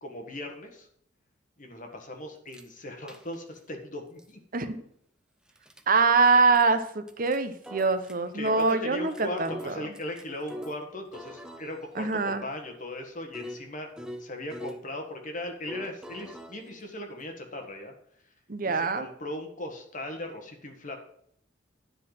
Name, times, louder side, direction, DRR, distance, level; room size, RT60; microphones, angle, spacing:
voice 1, 0.0-0.9 1.6-4.7 8.3-13.9 14.2-17.9 18.6-21.0, left 1 dB, 45° left, 4 dB, 1.4 m, -38 dB
sound 1, 2.5-2.6 3.1-3.6 4.2-4.3 5.5-5.8 6.2-6.3 6.5-6.7 7.1-8.1 8.5-10.8 11.1-14.8 15.7-17.4, equal, 5° right, 0.6 m, -44 dB
voice 2, 5.9-9.8 11.9-12.4 18.5-19.1, right 4 dB, 50° right, 10 dB, 0.8 m, -24 dB
10.0 x 4.0 x 7.5 m, 0.68 s
head